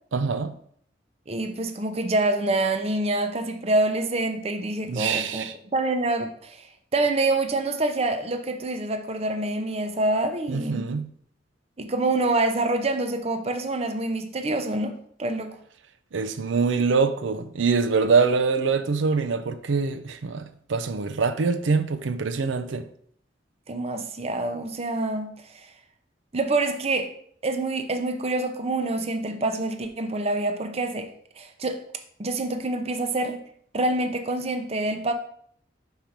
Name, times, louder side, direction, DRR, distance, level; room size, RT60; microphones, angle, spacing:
voice 1, 0.1-0.5 4.9-5.5 10.5-11.1 16.1-22.9, right 4 dB, 85° right, 0.5 m, -24 dB
voice 2, 1.3-10.9 11.8-15.5 23.7-25.7 26.3-27.1 27.4-31.1 31.4-31.8 32.2-33.4 33.7-35.1, right 2 dB, 35° right, 0.6 m, -26 dB
5.6 x 4.4 x 5.1 m
head